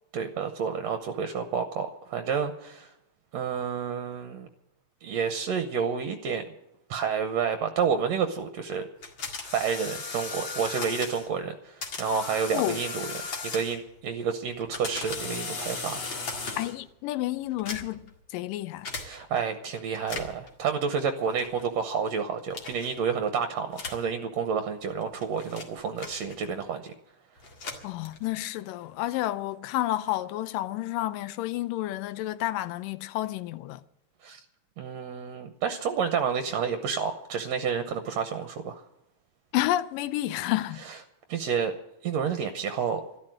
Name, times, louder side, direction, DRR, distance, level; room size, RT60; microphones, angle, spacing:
voice 1, 0.1-2.9 3.3-4.5 5.0-6.4 6.9-8.8 9.5-13.1 13.4-16.0 19.0-26.9 34.2-34.4 34.8-38.8 40.9-41.0 41.3-41.7 42.0-43.0, right 6 dB, 70° right, 1.8 m, -29 dB
sound 1, 9.0-11.3 11.8-13.9 14.5-16.8 17.5-18.1 18.8-19.1 20.0-20.5 21.4-21.7 22.5-22.9 23.7-24.1 24.9-26.6 27.4-28.4, left 4 dB, 40° left, 2.3 m, -37 dB
voice 2, 16.6-18.1 18.3-18.9 27.8-33.8 39.5-40.8, left 15 dB, 85° left, 2.3 m, -30 dB
12.5 x 12.5 x 7.6 m
omnidirectional pair, 3.8 m